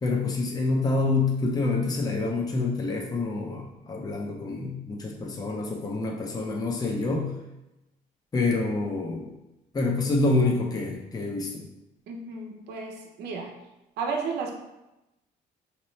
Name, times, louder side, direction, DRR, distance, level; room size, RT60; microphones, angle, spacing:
voice 1, 0.0-7.3 8.3-9.3 9.7-11.7, left 3 dB, 20° left, -1 dB, 0.7 m, -27 dB
voice 2, 12.1-13.5 14.0-14.5, right 4 dB, 75° right, 1 dB, 0.8 m, -33 dB
5.1 x 2.9 x 3.2 m, 0.95 s
cardioid pair, 110°, 17 cm